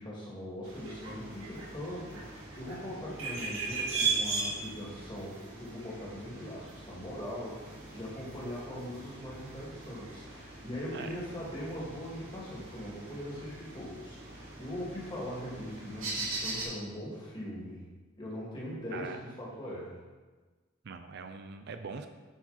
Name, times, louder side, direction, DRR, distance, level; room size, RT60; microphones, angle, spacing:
voice 1, 0.0-17.9 18.2-20.0, equal, 25° left, -5 dB, 2.2 m, -41 dB
sound 1, 0.6-16.6, right 4 dB, 90° right, 2.3 m, -39 dB
voice 2, 20.8-22.1, right 5 dB, 55° right, 8 dB, 0.4 m, -42 dB
10.0 x 4.7 x 4.1 m, 1.3 s
head